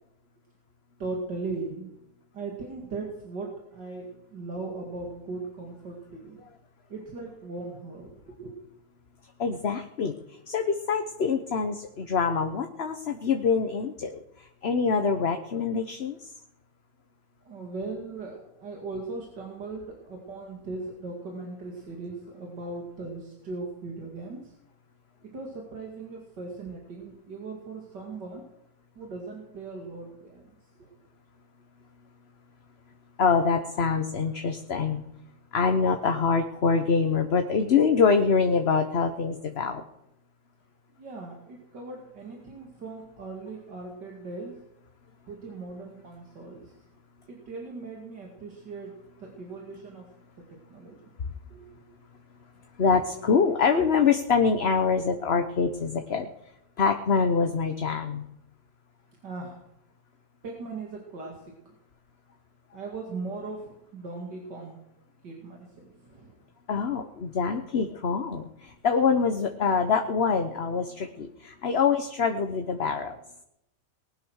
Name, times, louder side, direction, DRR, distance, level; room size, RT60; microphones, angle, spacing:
voice 1, 1.0-1.9 2.3-6.4 6.9-8.5 17.4-24.5 25.2-28.5 29.0-30.9 41.0-44.6 45.3-46.7 47.3-50.1 50.4-51.0 51.5-51.7 59.2-59.6 60.4-61.4 62.7-64.8 65.2-66.4, right 3 dB, 85° right, 0 dB, 3.0 m, -39 dB
voice 2, 9.4-16.2 33.2-35.0 35.5-39.8 52.8-56.3 56.8-58.3 66.7-73.2, left 5 dB, 45° left, 6 dB, 1.1 m, -25 dB
19.5 x 11.0 x 6.4 m, 0.84 s
omnidirectional pair, 1.8 m